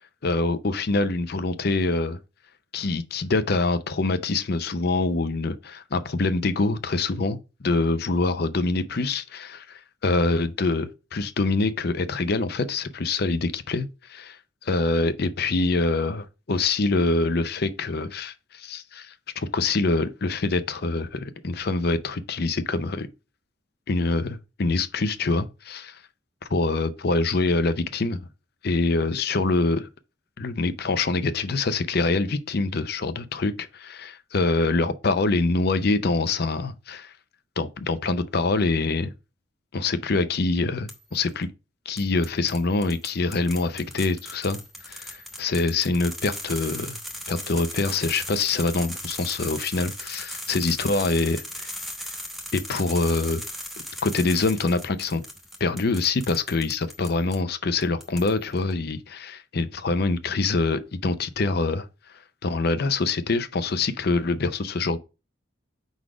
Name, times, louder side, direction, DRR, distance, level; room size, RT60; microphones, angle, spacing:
voice 1, 0.2-2.2 2.7-23.1 23.9-26.0 26.5-28.2 28.6-29.9 30.4-37.1 37.6-39.1 39.7-41.5 41.9-44.6 44.9-47.0 47.3-51.7 52.5-53.4 54.0-55.2 55.6-61.9 62.4-65.0, left 3 dB, 55° left, 0.6 m, -25 dB
sound 1, 40.9-41.3 42.0-57.4 57.8-58.6, equal, ahead, 1.0 m, -38 dB
4.8 x 4.0 x 4.9 m
head